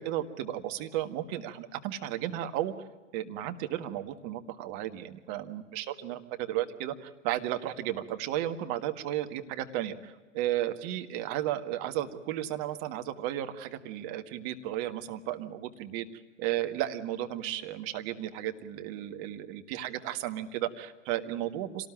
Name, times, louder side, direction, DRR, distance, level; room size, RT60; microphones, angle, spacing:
voice 1, 0.0-2.7 3.1-16.1 16.4-21.9, right 12 dB, 35° right, 8 dB, 1.7 m, -34 dB
26.0 x 19.0 x 9.0 m, 1.2 s
figure-of-eight pair, 100°, 38 cm